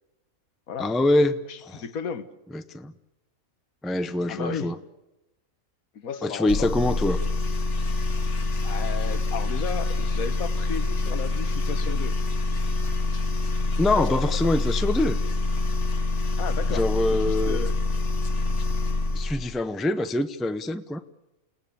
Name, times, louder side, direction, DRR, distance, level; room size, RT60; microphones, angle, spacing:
voice 1, 0.8-1.8 2.5-2.9 3.8-4.8 6.2-7.2 13.8-15.2 16.7-17.6 19.1-21.0, left 2 dB, ahead, 0.5 m, -25 dB
voice 2, 1.5-2.3 4.3-4.7 5.9-6.8 8.6-12.1 14.0-14.2 16.4-17.8, left 6 dB, 80° left, 1.6 m, -34 dB
sound 1, 6.5-19.4, left 2 dB, 55° left, 1.8 m, -26 dB
29.5 x 18.0 x 7.0 m
omnidirectional pair, 1.5 m